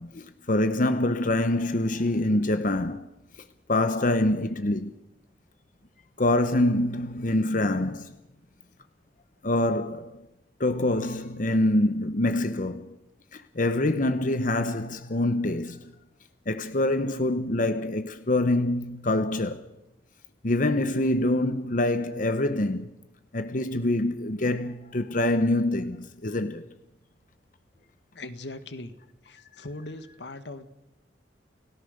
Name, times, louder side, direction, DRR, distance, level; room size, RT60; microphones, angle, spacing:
voice 1, 0.0-3.1 3.7-5.0 6.2-8.1 9.4-10.2 10.6-13.0 13.3-15.9 16.5-19.7 20.4-22.9 23.3-26.6, left 1 dB, 50° left, 1.0 m, -25 dB
voice 2, 28.1-29.0 29.2-30.7, left 2 dB, 80° left, 1.7 m, -40 dB
29.0 x 17.0 x 6.7 m
head